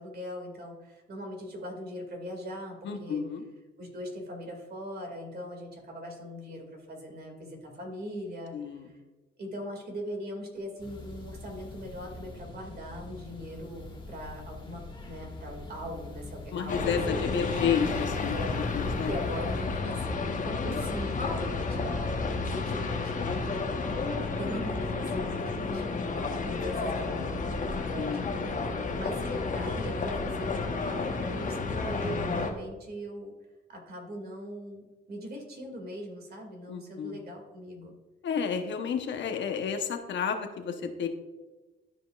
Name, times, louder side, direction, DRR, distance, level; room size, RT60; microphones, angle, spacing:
voice 1, 0.0-3.2 3.8-8.9 9.4-16.8 17.1-17.2 18.3-33.3 33.7-37.9, equal, 50° right, 2 dB, 2.3 m, -40 dB
voice 2, 2.8-3.4 8.5-8.9 16.5-18.4 18.7-19.1 28.0-28.3 36.7-37.2 38.2-41.1, left 6 dB, 65° left, 6 dB, 1.0 m, -31 dB
sound 1, 10.8-19.8, left 2 dB, 25° left, 1.5 m, -44 dB
sound 2, 16.7-32.5, left 4 dB, 40° left, 1.1 m, -31 dB
12.5 x 5.2 x 2.4 m, 1.2 s
cardioid pair, 90°, 20 cm